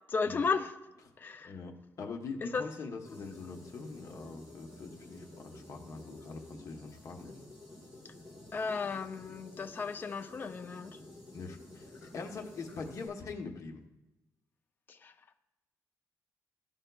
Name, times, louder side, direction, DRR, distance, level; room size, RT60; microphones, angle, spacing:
voice 1, 0.1-0.7 1.2-1.5 2.5-2.7 8.0-8.1 8.5-11.0 12.0-12.1 14.9-15.1, left 5 dB, 30° left, 7 dB, 0.4 m, -34 dB
voice 2, 1.4-7.3 11.3-13.8, left 4 dB, 50° left, 3 dB, 1.0 m, -43 dB
sound 1, 3.0-13.1, left 2 dB, 10° right, 2.6 m, -51 dB
13.5 x 5.3 x 2.3 m, 1.0 s
cardioid pair, 140°, 7 cm